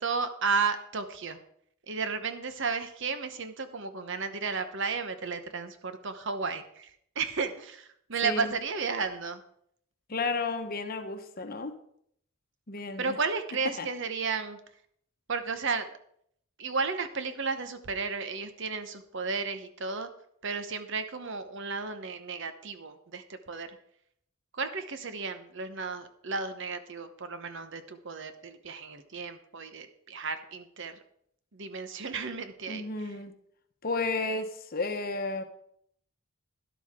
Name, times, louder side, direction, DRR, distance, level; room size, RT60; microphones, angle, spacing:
voice 1, 0.0-1.4 1.9-9.4 13.0-14.6 15.3-15.9 16.6-20.1 20.4-23.7 24.5-31.0 31.5-33.2, right 4 dB, 60° right, 1.0 m, -33 dB
voice 2, 8.2-8.5 10.1-11.8 12.7-13.2 13.8-13.9 32.7-33.3 33.8-35.4, left 3 dB, 45° left, 1.0 m, -32 dB
12.0 x 11.5 x 3.7 m
head